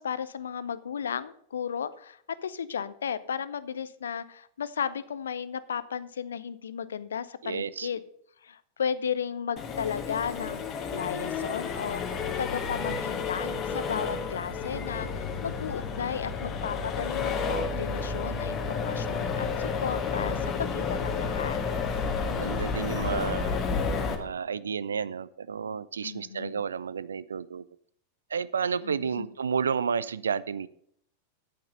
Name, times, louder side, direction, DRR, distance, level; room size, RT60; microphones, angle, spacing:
voice 1, 0.0-8.0 8.4-12.0 12.4-21.6 26.0-26.6 28.8-29.3, left 7 dB, 65° left, 16 dB, 0.6 m, -34 dB
voice 2, 7.4-7.9 22.0-23.6 24.2-27.7 28.3-30.7, right 6 dB, 70° right, 19 dB, 0.4 m, -31 dB
Accelerating revving vroom, 9.6-24.1, left 5 dB, 30° left, 1.5 m, -31 dB
8.8 x 8.7 x 5.4 m, 0.66 s
figure-of-eight pair, 90°, 0 cm